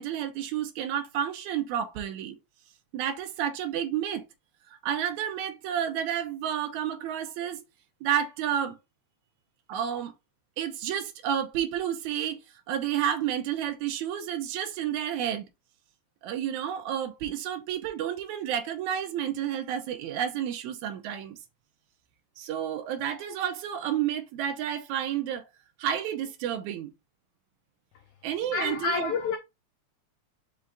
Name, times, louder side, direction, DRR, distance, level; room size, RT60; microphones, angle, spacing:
voice 1, 0.0-2.4 2.9-4.2 4.8-7.6 8.0-8.8 9.7-10.1 10.6-12.4 12.7-15.5 16.2-21.4 22.4-25.4 25.8-26.9 28.2-29.1, right 9 dB, 85° right, 2.0 m, -30 dB
voice 2, 28.5-29.4, left 5 dB, 85° left, 1.3 m, -28 dB
5.5 x 2.5 x 3.6 m
omnidirectional pair, 3.3 m